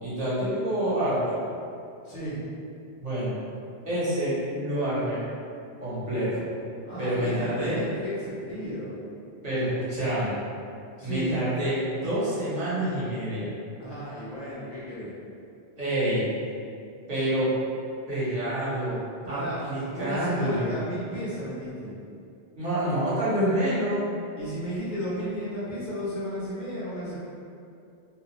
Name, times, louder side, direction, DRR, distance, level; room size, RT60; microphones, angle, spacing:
voice 1, 0.0-1.4 3.0-3.4 3.8-5.2 5.8-6.4 7.0-7.7 9.4-10.4 11.0-13.5 15.8-16.2 17.1-17.5 18.1-19.0 19.3-20.7 22.5-24.0, right 1 dB, 40° right, -11 dB, 1.0 m, -27 dB
voice 2, 2.0-2.4 6.8-9.0 11.0-11.4 13.8-15.1 19.2-21.9 24.3-27.2, equal, 50° left, -9 dB, 0.9 m, -34 dB
2.5 x 2.3 x 2.9 m, 2.5 s
omnidirectional pair, 1.1 m